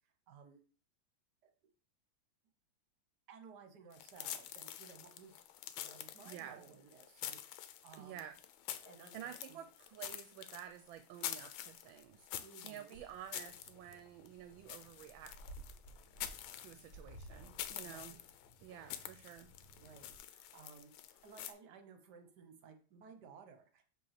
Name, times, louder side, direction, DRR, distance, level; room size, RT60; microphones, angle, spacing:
voice 1, 0.3-0.6 1.4-1.5 3.3-5.4 5.8-8.3 8.8-9.6 12.4-13.0 17.8-18.2 19.7-23.8, right 6 dB, 60° right, 6 dB, 1.4 m, -58 dB
sound 1, 3.9-21.5, left 11 dB, 90° left, 1.4 m, -47 dB
voice 2, 6.3-6.6 8.0-8.4 9.1-15.5 16.6-18.2 18.6-19.5, right 10 dB, 80° right, 9 dB, 1.3 m, -51 dB
sound 2, 12.9-20.2, right 1 dB, 40° left, 1.4 m, -57 dB
5.2 x 3.4 x 5.7 m, 0.39 s
omnidirectional pair, 2.1 m